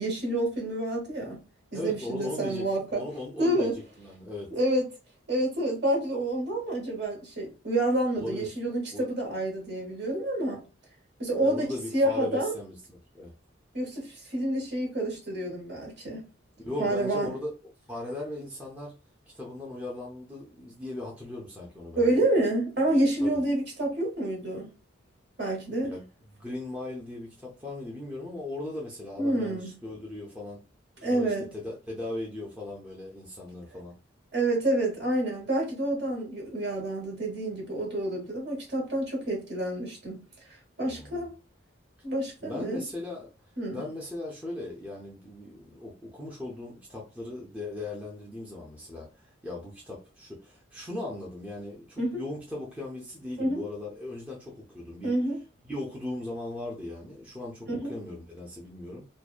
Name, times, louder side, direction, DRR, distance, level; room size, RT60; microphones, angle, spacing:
voice 1, 0.0-1.4 1.7-3.0 3.4-3.8 4.5-4.8 5.3-10.6 11.2-12.5 13.7-16.2 16.8-17.3 22.0-24.7 25.4-25.9 29.2-29.7 31.0-31.4 34.3-40.2 40.8-41.3 42.0-42.8 43.6-43.8 52.0-52.2 53.4-53.6 55.0-55.4 57.7-57.9, right 1 dB, 55° right, 1.1 m, -28 dB
voice 2, 1.7-4.5 8.2-8.5 8.9-9.1 11.3-13.3 16.6-18.9 19.3-22.2 23.2-23.4 25.8-30.6 31.1-33.9 40.8-41.3 42.4-43.3 43.7-55.1 55.6-59.1, left 2 dB, 5° right, 0.5 m, -38 dB
2.6 x 2.1 x 2.3 m
head